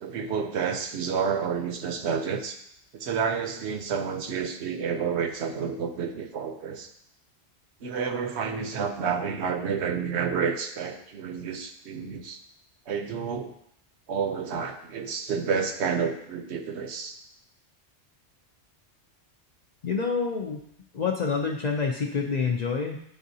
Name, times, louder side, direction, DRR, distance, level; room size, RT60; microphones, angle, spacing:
voice 1, 0.0-2.6 2.9-6.9 7.8-12.4 12.9-13.5 14.1-17.1, right 6 dB, 70° right, 6 dB, 0.9 m, -30 dB
voice 2, 19.8-20.6 20.9-23.0, left 5 dB, 55° left, 0 dB, 0.5 m, -27 dB
10.0 x 3.7 x 2.7 m, 0.73 s
omnidirectional pair, 1.2 m